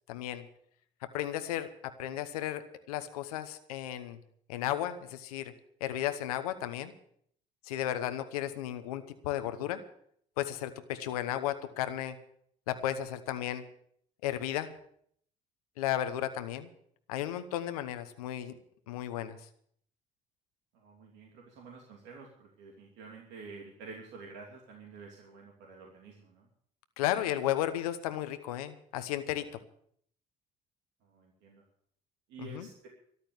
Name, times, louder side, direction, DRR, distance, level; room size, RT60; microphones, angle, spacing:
voice 1, 0.1-0.4 1.0-4.2 4.5-5.5 5.8-6.9 7.6-9.8 10.4-12.2 12.7-13.6 14.2-14.7 15.8-16.7 17.1-18.6 18.9-19.4 27.0-29.5 32.4-32.7, left 12 dB, 90° left, 10 dB, 0.9 m, -34 dB
voice 2, 20.7-26.5 31.0-31.6 32.3-32.9, right 4 dB, 70° right, 0 dB, 2.8 m, -49 dB
13.5 x 11.5 x 7.1 m, 0.65 s
hypercardioid pair, 65°, 19 cm